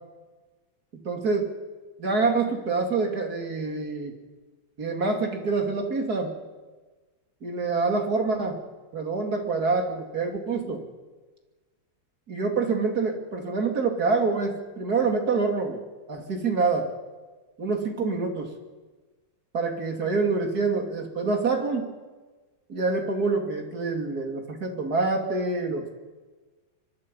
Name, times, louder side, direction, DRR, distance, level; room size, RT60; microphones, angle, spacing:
voice 1, 0.9-1.5 2.0-4.2 4.8-6.3 7.4-8.6 8.9-10.8 12.3-15.8 16.1-16.9 17.6-18.5 19.5-21.9 22.7-26.0, right 4 dB, 50° right, 3 dB, 3.4 m, -26 dB
25.0 x 24.0 x 5.6 m, 1.3 s
omnidirectional pair, 2.2 m